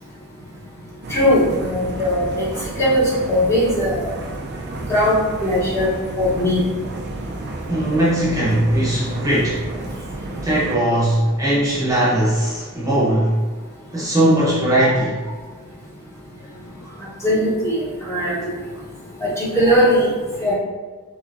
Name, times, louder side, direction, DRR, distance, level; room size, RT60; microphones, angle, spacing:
sound 1, 1.0-10.8, right 2 dB, 50° right, 0.5 m, -31 dB
voice 1, 1.1-2.5 2.8-4.0 4.9-5.2 5.4-5.9 6.2-6.6 14.8-14.9 17.2-17.7 18.0-18.5 19.2-20.1 20.4-20.5, equal, 10° left, -7 dB, 1.1 m, -19 dB
voice 2, 7.7-9.6 10.4-13.5 13.9-15.2, right 1 dB, 15° right, -6 dB, 1.0 m, -19 dB
6.2 x 3.0 x 2.6 m, 1.4 s
head